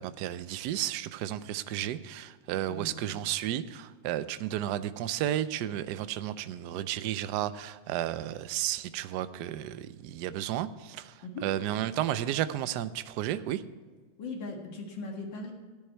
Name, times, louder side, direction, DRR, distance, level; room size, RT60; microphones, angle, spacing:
voice 1, 0.0-13.6, right 12 dB, 75° right, 13 dB, 1.1 m, -33 dB
voice 2, 14.2-15.5, left 2 dB, 75° left, 1 dB, 2.5 m, -39 dB
14.0 x 9.8 x 4.5 m, 1.5 s
omnidirectional pair, 2.0 m